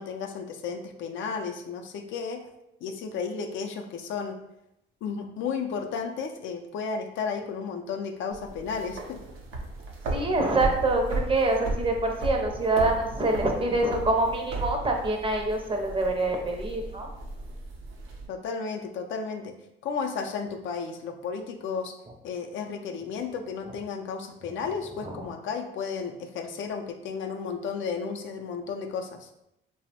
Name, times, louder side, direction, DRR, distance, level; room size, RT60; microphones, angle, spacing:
voice 1, 0.0-2.4 2.8-4.4 5.0-9.2 18.3-19.5 19.8-21.9 22.2-29.3, left 5 dB, 75° left, 5 dB, 0.4 m, -33 dB
sound 1, 8.3-18.3, right 2 dB, 90° right, 0.5 m, -35 dB
voice 2, 10.1-17.1 25.0-25.2, right 2 dB, 25° right, 2 dB, 0.5 m, -25 dB
2.8 x 2.0 x 2.8 m, 0.84 s
cardioid pair, 90°, 20 cm